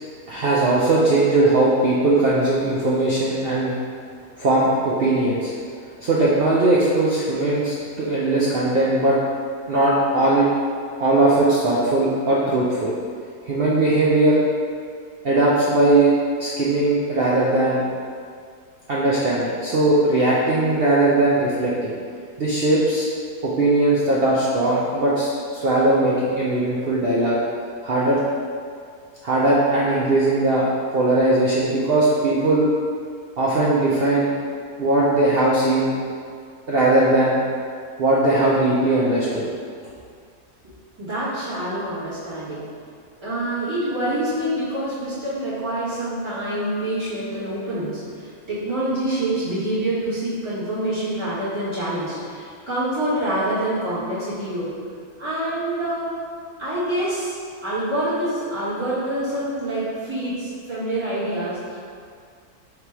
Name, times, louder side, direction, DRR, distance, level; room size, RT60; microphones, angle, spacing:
voice 1, 0.3-3.7 4.4-5.5 6.0-9.2 9.7-10.5 11.0-12.9 13.5-14.4 15.2-16.1 16.4-17.8 18.9-21.9 22.4-23.1 23.4-27.4 27.8-28.2 29.2-30.6 30.9-32.7 33.4-34.3 34.8-35.9 36.7-37.4 38.0-39.4, right 2 dB, 80° right, -6 dB, 0.5 m, -19 dB
voice 2, 41.0-42.7 43.2-54.7 55.2-56.2 56.6-57.4 57.6-61.8, right 1 dB, 20° right, -12 dB, 1.4 m, -26 dB
3.3 x 2.8 x 4.6 m, 2.2 s
omnidirectional pair, 1.7 m